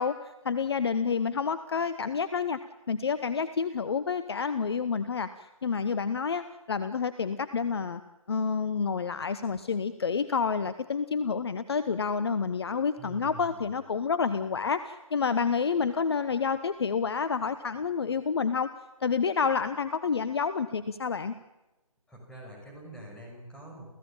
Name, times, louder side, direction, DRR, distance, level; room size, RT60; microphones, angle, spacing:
voice 1, 0.0-2.6 2.9-5.3 5.6-8.0 8.3-18.7 19.0-21.3, left 5 dB, 45° left, 12 dB, 1.0 m, -29 dB
voice 2, 13.0-13.7 22.1-23.9, right 1 dB, 5° left, -2 dB, 6.1 m, -45 dB
29.5 x 15.5 x 8.9 m, 1.0 s
figure-of-eight pair, 155°, 19 cm